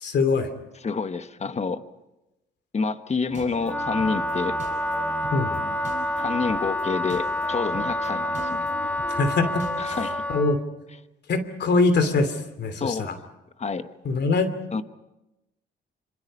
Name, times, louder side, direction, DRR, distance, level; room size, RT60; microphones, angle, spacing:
voice 1, 0.0-0.5 5.3-5.6 9.1-9.7 10.3-10.6 11.3-13.1 14.0-14.5, left 3 dB, 60° left, 10 dB, 2.9 m, -23 dB
voice 2, 0.7-1.8 2.7-4.6 6.1-8.7 9.8-10.2 12.8-13.1 13.6-13.9 14.7-14.8, left 4 dB, 35° left, 11 dB, 1.3 m, -28 dB
sound 1, 3.3-10.2, right 3 dB, 40° right, 4.9 m, -39 dB
Wind instrument woodwind instrument, 3.6-10.6, left 1 dB, 10° left, 1.5 m, -28 dB
26.5 x 25.5 x 5.5 m, 0.97 s
cardioid pair, 90°, 20 cm